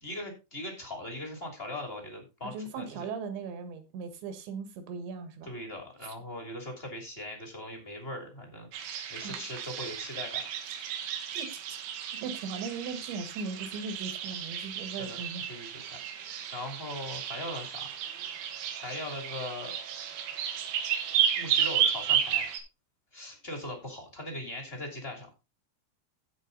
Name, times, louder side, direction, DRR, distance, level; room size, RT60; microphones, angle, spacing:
voice 1, 0.0-3.0 5.4-8.7 9.1-10.4 14.9-15.9 16.5-18.0 18.8-19.7 21.3-22.5 23.1-25.3, left 1 dB, 15° left, 2.2 m, -40 dB
voice 2, 2.5-5.5 6.0-6.2 9.2-9.4 11.4-11.8 12.2-15.4, right 5 dB, 70° right, 3.7 m, -38 dB
sound 1, 8.7-22.6, right 9 dB, 85° right, 4.0 m, -33 dB
16.0 x 5.3 x 4.0 m
omnidirectional pair, 5.5 m